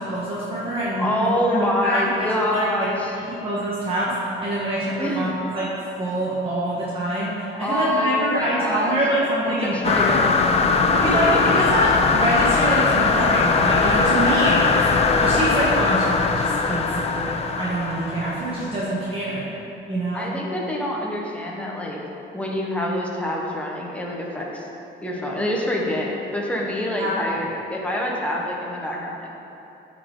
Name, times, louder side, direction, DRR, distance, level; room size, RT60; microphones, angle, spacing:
voice 1, 0.0-1.4 1.8-2.9 3.3-5.7 6.0-10.1 11.0-19.4 19.9-20.3 27.0-27.1 27.4-27.5, right 1 dB, 25° right, -8 dB, 1.3 m, -25 dB
voice 2, 1.0-3.1 5.0-5.3 7.6-9.0 9.4-10.3 10.9-11.4 14.2-14.4 20.1-22.0 22.3-24.7 25.0-29.4, left 1 dB, 5° left, -2 dB, 1.0 m, -26 dB
sound 1, 9.8-18.8, left 4 dB, 30° left, 0.5 m, -20 dB
14.5 x 5.2 x 3.8 m, 2.9 s
cardioid pair, 180°, 20 cm